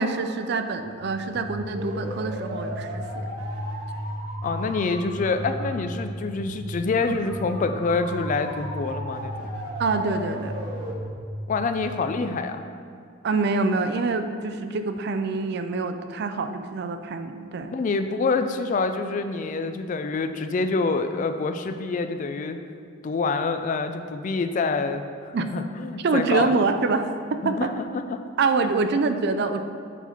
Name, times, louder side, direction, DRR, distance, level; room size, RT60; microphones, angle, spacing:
voice 1, 0.0-3.3 7.0-7.2 9.8-10.6 13.2-17.7 25.3-25.5 26.0-27.7 28.4-29.6, right 4 dB, 55° right, 8 dB, 0.4 m, -25 dB
sound 1, 0.7-12.5, equal, 70° right, 1.3 m, -34 dB
voice 2, 4.4-9.5 11.5-12.6 17.7-22.6 23.0-26.5 27.4-28.2, left 4 dB, 40° left, 8 dB, 0.3 m, -26 dB
8.0 x 4.2 x 4.3 m, 2.3 s
head